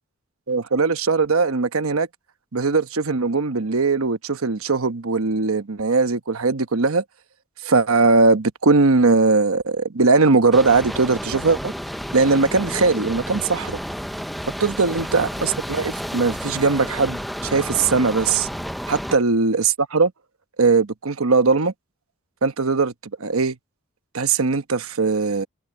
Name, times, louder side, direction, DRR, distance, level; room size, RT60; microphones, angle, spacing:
voice 1, 0.5-2.1 2.5-7.0 7.6-11.7 12.1-13.8 14.6-18.5 18.9-20.1 20.6-21.7 22.4-22.9 23.2-23.6 24.1-25.5, right 4 dB, 70° right, 1.1 m, -20 dB
sound 1, 10.5-19.2, equal, ahead, 0.6 m, -31 dB
head